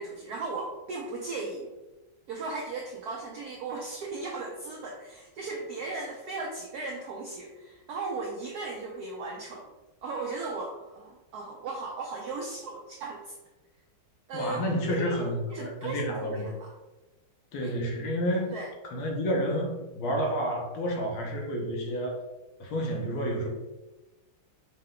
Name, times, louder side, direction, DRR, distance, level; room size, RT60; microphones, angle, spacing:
voice 1, 0.0-1.7 2.3-9.7 10.0-13.4 14.3-14.6 15.0-16.7 17.6-17.7 18.5-18.7, right 3 dB, 80° right, 0 dB, 0.8 m, -36 dB
voice 2, 14.3-16.5 17.5-18.5 18.8-22.2 22.6-23.5, equal, 85° left, 1 dB, 1.6 m, -30 dB
5.4 x 2.2 x 3.6 m, 1.1 s
omnidirectional pair, 2.3 m